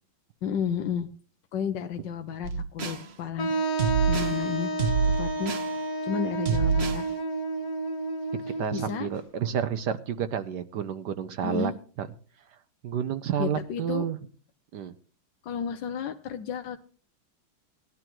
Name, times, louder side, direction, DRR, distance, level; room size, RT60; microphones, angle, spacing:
voice 1, 0.4-1.1 1.5-4.7 5.2-5.5 6.0-7.0 8.7-9.1 11.4-11.7 13.4-14.1 15.4-16.8, left 8 dB, 65° left, 6 dB, 1.4 m, -32 dB
sound 1, 2.4-3.0 3.8-4.4 4.8-5.7 6.4-7.0, right 5 dB, 40° right, 1.0 m, -26 dB
Wind instrument woodwind instrument, 3.4-9.1, right 2 dB, 45° left, 1.8 m, -31 dB
voice 2, 8.3-11.7 12.0-12.1 12.8-14.2 14.7-14.9, right 8 dB, 65° right, 11 dB, 1.1 m, -30 dB
19.0 x 11.5 x 3.0 m, 0.39 s
omnidirectional pair, 2.3 m